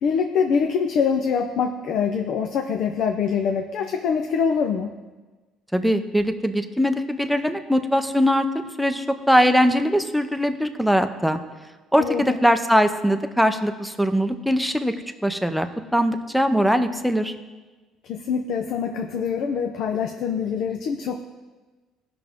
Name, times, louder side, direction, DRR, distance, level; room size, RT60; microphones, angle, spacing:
voice 1, 0.0-4.9 12.0-12.4 18.0-21.2, left 6 dB, 60° left, 5 dB, 0.7 m, -24 dB
voice 2, 5.7-8.5 8.8-11.4 11.9-14.9 15.2-17.3, equal, ahead, 6 dB, 0.6 m, -21 dB
18.0 x 6.0 x 3.6 m, 1.3 s
cardioid pair, 130°, 0 cm